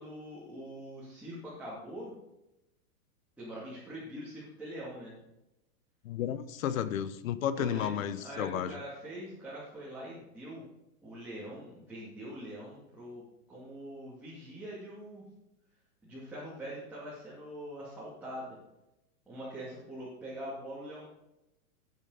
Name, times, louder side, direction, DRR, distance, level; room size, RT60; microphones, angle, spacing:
voice 1, 0.0-2.1 3.4-5.2 7.6-8.0 8.2-10.6 11.0-13.2 13.5-15.2 16.0-18.6 19.3-21.1, right 1 dB, 5° right, -9 dB, 2.4 m, -43 dB
voice 2, 6.0-8.7, left 9 dB, 60° left, 14 dB, 1.0 m, -32 dB
12.0 x 9.1 x 4.0 m, 0.90 s
supercardioid pair, 170°, 44 cm